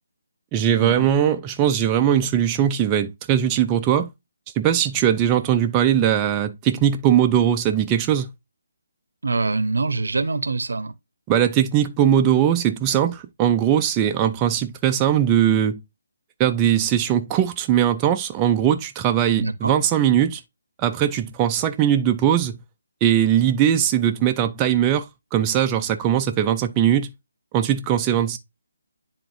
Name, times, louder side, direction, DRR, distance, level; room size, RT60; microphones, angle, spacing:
voice 1, 0.5-4.1 4.6-8.3 11.3-15.8 16.4-20.4 20.8-22.6 23.0-27.1 27.5-28.4, right 10 dB, 20° right, 0.5 m, -20 dB
voice 2, 9.2-10.9 19.4-19.7, right 3 dB, 70° right, 0.8 m, -24 dB
10.0 x 3.6 x 2.7 m
figure-of-eight pair, 150°, 0 cm